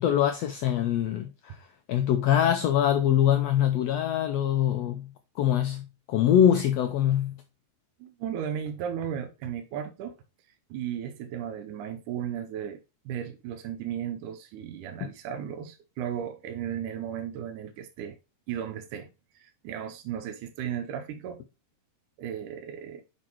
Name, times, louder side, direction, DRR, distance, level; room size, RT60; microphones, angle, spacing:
voice 1, 0.0-1.6 1.9-5.1 5.4-7.4, left 10 dB, 75° left, 1.6 m, -24 dB
voice 2, 8.0-10.2 10.7-12.8 13.1-18.2 18.5-19.1 19.4-21.4 22.2-23.0, right 9 dB, 90° right, 2.3 m, -35 dB
6.2 x 5.3 x 4.4 m
omnidirectional pair, 3.5 m